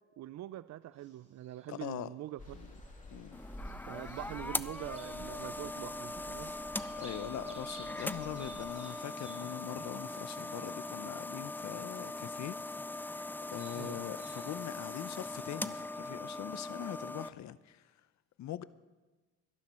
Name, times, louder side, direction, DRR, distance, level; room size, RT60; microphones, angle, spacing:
voice 1, 0.0-2.6 3.8-6.5 13.7-14.0, right 14 dB, 60° right, 0.5 m, -44 dB
sound 1, 0.9-1.9 2.5-3.2 3.6-5.6 5.9-11.1 11.7-11.8 12.9-15.1, right 1 dB, 25° right, 5.3 m, -57 dB
voice 2, 1.7-2.1 2.5-2.7 3.1-3.4 7.0-12.6 13.5-17.8 18.4-18.6, left 12 dB, 65° left, 0.7 m, -42 dB
sound 2, 2.4-8.7, left 1 dB, 25° left, 2.8 m, -51 dB
sound 3, 3.3-17.3, left 2 dB, 5° left, 0.4 m, -41 dB
22.5 x 12.0 x 4.3 m
cardioid pair, 90°, 30 cm